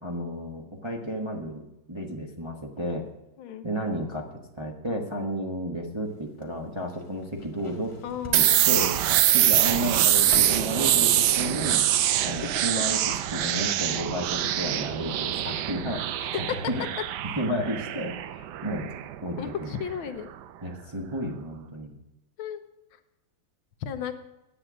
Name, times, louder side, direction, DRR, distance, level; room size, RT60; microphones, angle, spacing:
voice 1, 0.0-3.1 3.6-8.0 8.3-9.0 9.3-11.8 12.2-16.8 17.4-18.9 19.2-19.7 20.6-21.9, equal, 20° right, -1 dB, 0.9 m, -32 dB
sound 1, 6.1-11.2 11.5-11.6, left 2 dB, 20° left, 0.8 m, -42 dB
voice 2, 8.0-8.7 16.5-16.6 17.3-17.4 19.4-20.3 22.4-22.6 23.8-24.1, left 8 dB, 80° left, 8 dB, 1.6 m, -34 dB
sound 2, 8.3-20.0, right 12 dB, 75° right, 1.0 m, -24 dB
10.5 x 8.2 x 6.2 m, 0.96 s
omnidirectional pair, 2.2 m